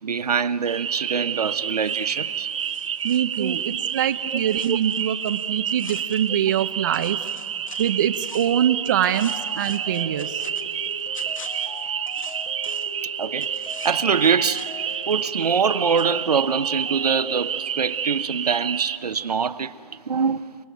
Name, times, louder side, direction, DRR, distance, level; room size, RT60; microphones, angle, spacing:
voice 1, 0.0-2.5 3.4-3.5 4.2-4.8 13.0-13.6 13.8-14.7 15.1-20.6, right 6 dB, 80° right, 1.0 m, -24 dB
sound 1, 0.7-19.0, right 8 dB, 55° right, 1.0 m, -29 dB
sound 2, 2.6-6.7 6.9-8.7 9.0-13.0 13.4-15.7 16.0-16.1, left 6 dB, 55° left, 1.8 m, -46 dB
voice 2, 3.0-7.2 7.8-10.4, right 10 dB, 30° right, 0.6 m, -24 dB
sound 3, 9.0-17.6, left 4 dB, 10° left, 1.0 m, -40 dB
30.0 x 19.5 x 9.2 m
hypercardioid pair, 160°, 20 cm